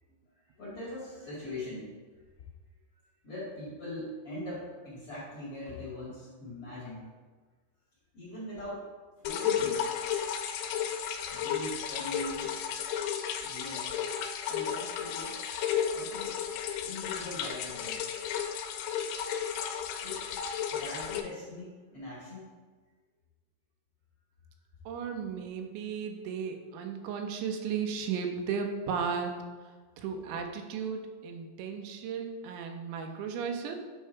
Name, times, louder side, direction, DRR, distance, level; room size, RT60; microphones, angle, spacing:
voice 1, 0.3-1.9 2.9-7.0 8.1-8.8 9.2-9.9 11.3-12.5 13.4-13.9 14.3-15.4 15.9-16.3 16.9-18.0 20.0-20.2 20.7-22.4, left 1 dB, 40° left, -9 dB, 2.4 m, -41 dB
sound 1, 9.3-21.2, left 8 dB, 80° left, 2.7 m, -33 dB
voice 2, 24.9-29.4 30.0-33.8, right 6 dB, 85° right, 5 dB, 2.9 m, -35 dB
9.1 x 3.6 x 4.5 m, 1.4 s
omnidirectional pair, 5.3 m